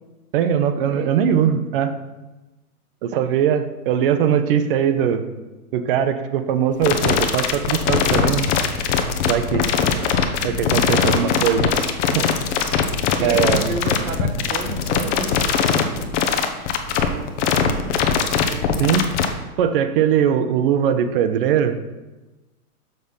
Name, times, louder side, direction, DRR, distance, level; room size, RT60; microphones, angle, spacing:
voice 1, 0.3-1.9 3.0-5.3 5.7-8.5 9.2-9.7 10.4-11.7 12.1-12.3 13.2-13.7 18.8-19.1 19.6-21.8, right 8 dB, 40° right, 10 dB, 0.6 m, -20 dB
voice 2, 0.8-1.3 10.0-11.4 13.0-16.7 17.0-17.3 17.6-18.1 18.5-18.7, right 5 dB, 65° right, 4 dB, 1.4 m, -33 dB
sound 1, 6.8-19.3, left 7 dB, 50° left, 0.9 m, -20 dB
6.5 x 5.6 x 5.3 m, 1.1 s
hypercardioid pair, 130°, 46 cm